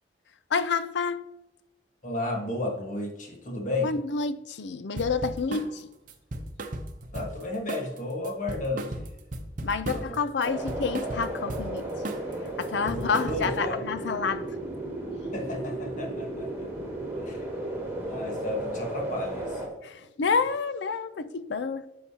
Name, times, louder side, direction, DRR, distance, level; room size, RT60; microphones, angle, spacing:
voice 1, 0.5-1.3 3.8-5.9 9.6-11.9 12.6-14.5 19.8-21.9, left 5 dB, 75° left, 0.5 m, -29 dB
voice 2, 2.0-4.0 7.1-9.1 9.9-10.2 12.8-13.8 15.3-16.7 17.2-17.5 18.0-19.6, left 2 dB, 45° left, 1.5 m, -33 dB
sound 1, 5.0-5.7 6.1-7.4 7.7-8.0 8.2-10.2 10.4-11.7 12.0-12.3 12.6-13.6, right 1 dB, 45° right, 0.7 m, -35 dB
sound 2, 10.4-19.7, right 1 dB, 10° right, 1.8 m, -34 dB
9.9 x 6.4 x 2.8 m
head